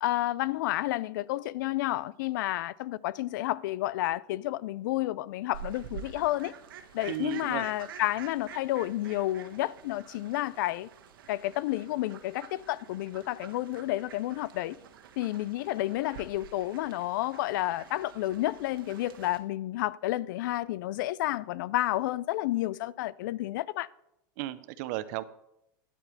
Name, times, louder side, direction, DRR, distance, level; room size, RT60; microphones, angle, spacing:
voice 1, 0.0-6.5 6.9-10.9 11.3-14.8 15.2-23.9, left 16 dB, 65° left, 0.4 m, -31 dB
Fowl, 5.5-19.4, right 8 dB, 90° right, 1.2 m, -48 dB
voice 2, 7.1-7.6 24.4-25.2, right 15 dB, 55° right, 0.6 m, -34 dB
10.0 x 4.4 x 6.9 m
supercardioid pair, 140°, 11 cm